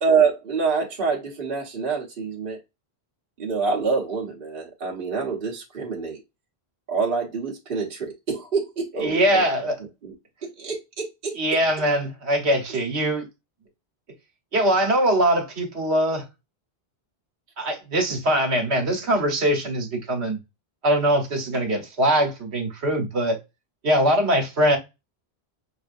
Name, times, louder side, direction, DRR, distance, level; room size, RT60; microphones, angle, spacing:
voice 1, 0.0-2.6 3.4-6.2 6.9-9.5 10.0-10.1 10.4-11.4, right 5 dB, 55° right, 1.2 m, -26 dB
voice 2, 9.0-9.8 11.3-13.2 14.5-16.2 17.6-20.4 20.8-23.4 23.8-24.8, right 1 dB, 80° right, 1.5 m, -22 dB
6.0 x 2.4 x 2.5 m
omnidirectional pair, 1.1 m